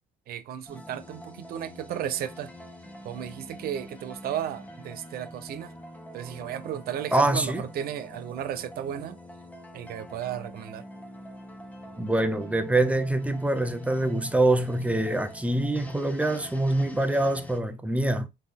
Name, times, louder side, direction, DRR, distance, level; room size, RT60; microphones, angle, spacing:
voice 1, 0.3-2.5 3.0-5.7 6.1-9.2 9.7-10.8, right 10 dB, 65° right, 0.7 m, -34 dB
sound 1, 0.7-17.6, equal, 10° left, 1.0 m, -45 dB
voice 2, 7.1-7.7 12.0-18.3, right 2 dB, 10° right, 0.7 m, -25 dB
4.0 x 3.3 x 3.5 m
cardioid pair, 110°, 17 cm